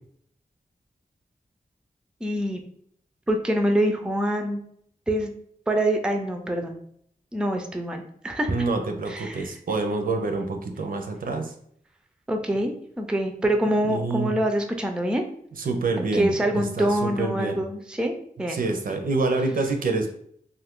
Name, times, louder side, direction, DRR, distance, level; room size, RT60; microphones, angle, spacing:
voice 1, 2.2-2.6 3.3-4.6 5.1-5.3 5.7-6.8 7.3-8.5 9.1-9.5 12.3-15.2 16.1-18.6 18.9-19.0, right 1 dB, 5° right, 4 dB, 0.4 m, -25 dB
voice 2, 8.5-11.5 13.8-14.3 15.6-17.6 18.5-20.1, right 3 dB, 65° right, 5 dB, 0.5 m, -27 dB
2.6 x 2.4 x 3.5 m, 0.67 s
wide cardioid pair, 105°, 16 cm